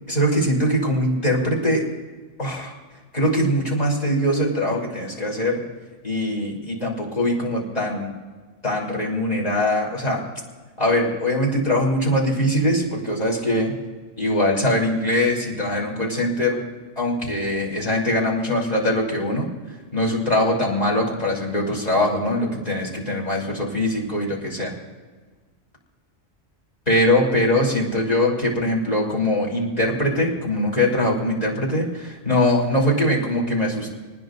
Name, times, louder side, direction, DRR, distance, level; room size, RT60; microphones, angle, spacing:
voice 1, 0.1-1.9 2.4-2.7 3.1-5.6 6.0-8.1 8.6-10.2 10.8-13.7 14.2-16.6 17.0-19.5 19.9-24.7 26.9-33.9, left 1 dB, 35° left, -4 dB, 3.8 m, -22 dB
26.0 x 19.5 x 2.6 m, 1.4 s
omnidirectional pair, 1.2 m